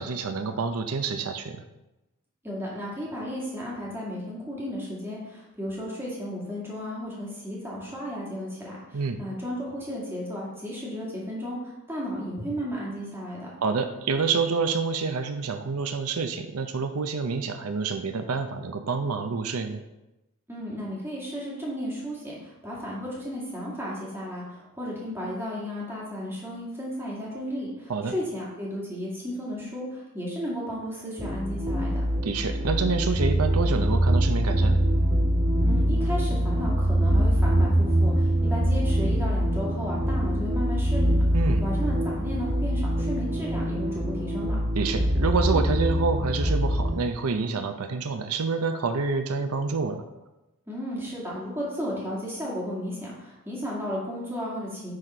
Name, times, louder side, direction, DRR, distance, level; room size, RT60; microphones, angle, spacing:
voice 1, 0.0-1.6 8.9-9.2 13.6-19.8 27.9-28.1 32.2-34.8 41.3-41.6 44.8-50.1, right 4 dB, 85° right, 8 dB, 0.6 m, -28 dB
voice 2, 2.4-13.5 20.5-32.0 35.6-44.6 50.7-54.9, equal, 10° right, -5 dB, 2.2 m, -34 dB
sound 1, 31.2-46.9, equal, 40° right, 2.2 m, -24 dB
9.7 x 4.1 x 4.4 m, 0.98 s
head